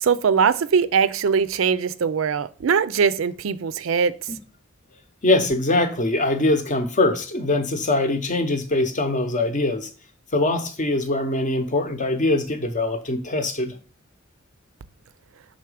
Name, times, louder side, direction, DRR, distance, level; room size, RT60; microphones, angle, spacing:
voice 1, 0.0-4.1, right 6 dB, 75° right, 0.4 m, -21 dB
voice 2, 5.2-9.9 10.3-13.7, left 2 dB, 40° left, 0.8 m, -22 dB
5.8 x 3.9 x 4.9 m
head